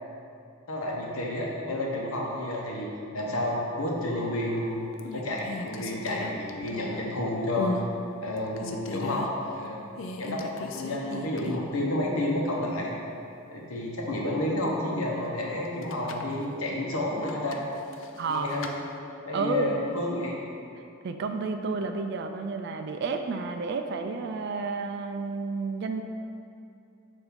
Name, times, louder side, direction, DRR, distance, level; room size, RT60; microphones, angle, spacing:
voice 1, 0.7-2.9 3.1-4.9 5.1-7.7 8.2-9.8 10.2-12.9 13.5-17.6 18.3-18.7 19.3-20.3, left 1 dB, 80° left, -2 dB, 0.9 m, -30 dB
sound 1, 4.2-4.6 5.0-7.1 7.5-7.9 8.3-9.3 10.0-11.7 12.1-12.2 15.6-16.3 17.2-18.8, left 2 dB, 60° left, 0.4 m, -37 dB
voice 2, 18.2-18.5 19.3-19.8 21.0-26.0, right 4 dB, 50° right, 6 dB, 0.3 m, -31 dB
7.1 x 2.6 x 5.1 m, 2.6 s
head